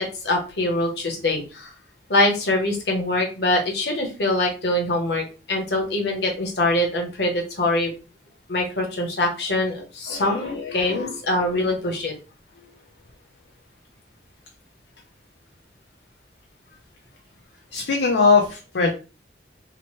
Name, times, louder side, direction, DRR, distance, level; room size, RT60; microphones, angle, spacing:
voice 1, 0.0-1.7 2.1-7.9 8.5-12.1, left 1 dB, 70° left, 1 dB, 0.9 m, -24 dB
voice 2, 10.1-11.1 17.7-18.9, left 4 dB, 85° left, 1 dB, 0.5 m, -22 dB
2.9 x 2.1 x 3.0 m, 0.34 s
head